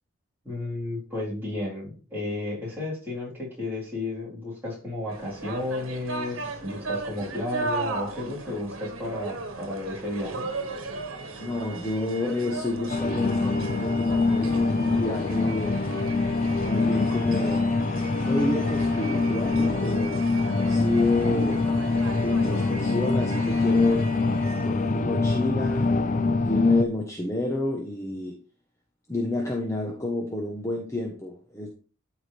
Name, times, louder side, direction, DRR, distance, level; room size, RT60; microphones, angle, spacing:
voice 1, 0.4-10.5, left 2 dB, 10° right, -7 dB, 3.8 m, -33 dB
sound 1, 5.1-24.9, right 3 dB, 75° right, 1.5 m, -37 dB
voice 2, 11.4-15.8 16.6-17.7 18.2-20.2 20.7-21.7 22.2-24.1 24.6-28.4 29.1-31.7, left 1 dB, 15° left, 0 dB, 1.0 m, -30 dB
sound 2, 12.9-26.8, left 3 dB, 35° left, 0.4 m, -24 dB
12.5 x 4.8 x 3.4 m, 0.38 s
head